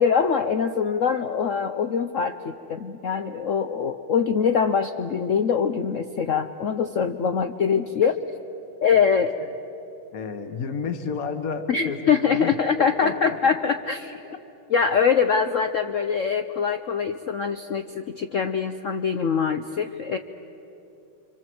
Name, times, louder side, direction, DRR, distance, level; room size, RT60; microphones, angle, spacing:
voice 1, 0.0-8.2 8.8-9.3 11.7-14.2 14.7-20.2, left 6 dB, 75° left, 8 dB, 0.7 m, -23 dB
voice 2, 10.1-13.6, left 5 dB, 50° left, 7 dB, 1.7 m, -32 dB
26.0 x 25.5 x 7.8 m, 3.0 s
omnidirectional pair, 2.2 m